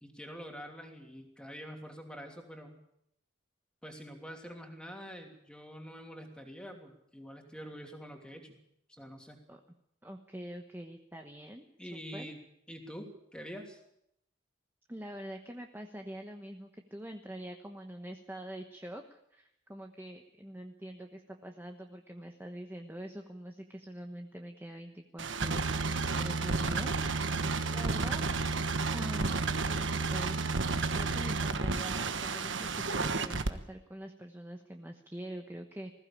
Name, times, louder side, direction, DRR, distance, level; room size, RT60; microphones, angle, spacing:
voice 1, 0.0-2.8 3.8-8.5 8.9-9.4 11.8-12.4 12.7-13.8, equal, 5° left, 3 dB, 3.0 m, -46 dB
voice 2, 10.0-11.6 11.9-12.3 14.9-26.9 27.3-28.3 28.9-36.0, right 1 dB, 10° right, 4 dB, 1.2 m, -45 dB
sound 1, 25.2-33.5, right 3 dB, 70° right, 1.4 m, -31 dB
20.5 x 16.0 x 8.7 m, 0.77 s
head